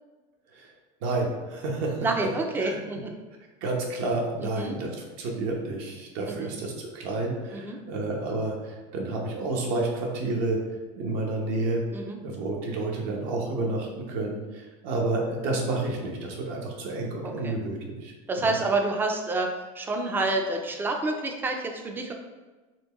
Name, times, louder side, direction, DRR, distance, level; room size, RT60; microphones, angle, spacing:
voice 1, 1.0-2.0 2.6-2.7 3.6-10.6 11.0-11.8 12.2-18.5, right 2 dB, 65° right, 0 dB, 0.9 m, -30 dB
voice 2, 2.0-3.1 4.4-4.8 6.3-6.5 7.5-7.8 11.9-12.2 17.2-17.6 18.3-22.1, right 2 dB, 15° right, 3 dB, 0.4 m, -28 dB
4.3 x 3.2 x 2.9 m, 1.3 s
cardioid pair, 155°, 16 cm